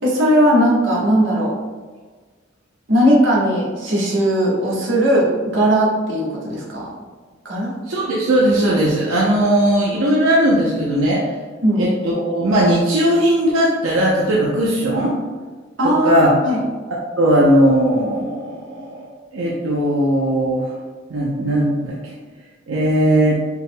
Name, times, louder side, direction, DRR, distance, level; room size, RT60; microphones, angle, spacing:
voice 1, 0.0-1.5 2.9-6.9 7.4-7.7 11.6-11.9 15.8-16.6, equal, 65° right, -4 dB, 1.3 m, -18 dB
voice 2, 7.9-11.4 11.8-15.2 15.8-16.3 16.9-19.1 19.3-20.7 21.1-22.1 22.7-23.4, right 1 dB, 85° right, -4 dB, 0.7 m, -18 dB
4.9 x 4.8 x 2.2 m, 1.4 s
head